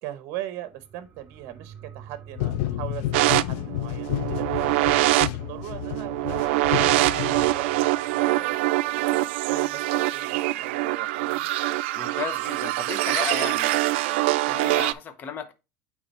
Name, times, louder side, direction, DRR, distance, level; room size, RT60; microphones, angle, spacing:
voice 1, 0.0-4.5 4.7-8.6 8.8-11.5, right 13 dB, 55° right, 0.9 m, -39 dB
sound 1, 0.6-9.7 10.1-10.2, right 8 dB, 35° right, 1.8 m, -51 dB
sound 2, 2.4-7.9, left 14 dB, 75° left, 0.4 m, -31 dB
sound 3, 3.1-14.9, right 17 dB, 85° right, 0.4 m, -24 dB
voice 2, 12.0-13.7 14.5-15.5, left 6 dB, 30° left, 0.8 m, -34 dB
8.7 x 3.3 x 4.2 m
cardioid pair, 150°, 6 cm